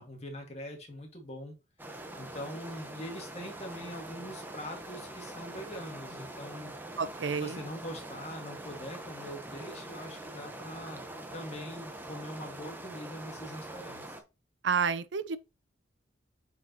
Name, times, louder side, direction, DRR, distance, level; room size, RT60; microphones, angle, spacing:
voice 1, 0.0-1.5 2.2-6.7 7.4-11.0 11.3-14.1, equal, 35° left, 2.0 m, -43 dB
sound 1, 1.8-14.2, right 1 dB, 10° right, 0.9 m, -44 dB
voice 2, 7.0-7.6 14.6-15.4, right 5 dB, 80° right, 0.6 m, -30 dB
8.2 x 4.7 x 2.9 m
head